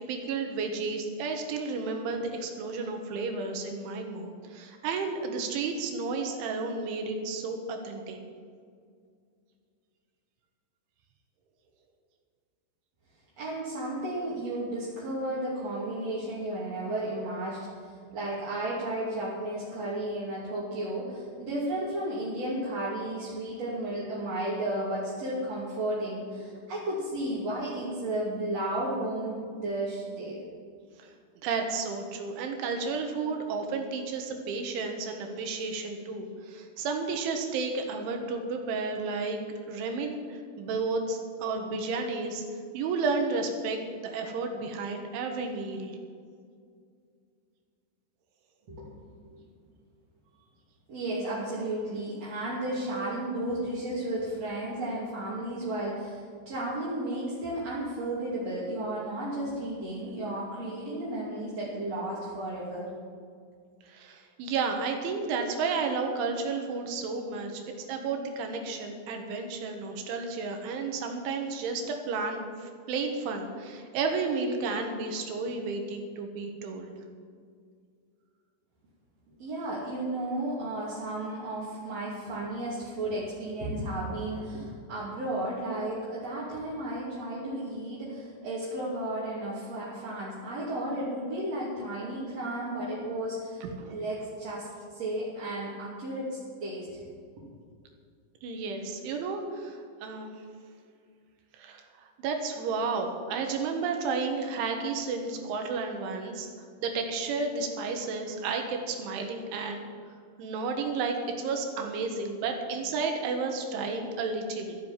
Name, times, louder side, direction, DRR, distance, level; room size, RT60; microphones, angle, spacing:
voice 1, 0.1-8.2 31.0-31.1 31.4-39.4 39.7-42.4 42.7-46.0 63.8-76.9 93.6-94.0 98.4-100.4 101.5-106.5 106.8-109.9 110.4-114.8, right 4 dB, 75° right, 4 dB, 3.7 m, -32 dB
voice 2, 13.4-30.4 48.7-49.0 50.9-62.9 79.4-97.0, right 1 dB, 40° right, -8 dB, 3.2 m, -33 dB
13.5 x 11.0 x 7.4 m, 2.2 s
omnidirectional pair, 5.6 m